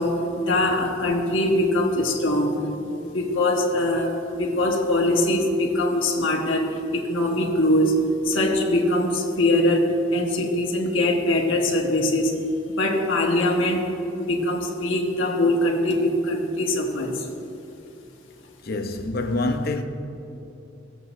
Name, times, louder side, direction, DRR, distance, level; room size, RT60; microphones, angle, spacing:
voice 1, 0.0-2.6 2.9-12.4 12.7-17.3, left 1 dB, 70° left, 1.5 m, -22 dB
voice 2, 18.6-19.8, left 2 dB, 50° left, 0.8 m, -26 dB
19.5 x 7.8 x 2.7 m
head